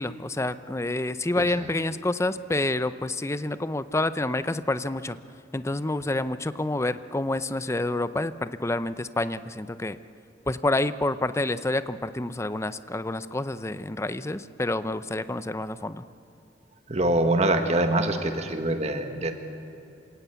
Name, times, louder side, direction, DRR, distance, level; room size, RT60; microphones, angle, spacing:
voice 1, 0.0-5.2 5.5-10.0 10.5-16.0, left 2 dB, 15° left, 13 dB, 0.6 m, -28 dB
voice 2, 1.4-1.7 16.9-19.4, right 1 dB, 35° right, 6 dB, 1.6 m, -24 dB
27.5 x 17.5 x 8.2 m, 2.8 s
head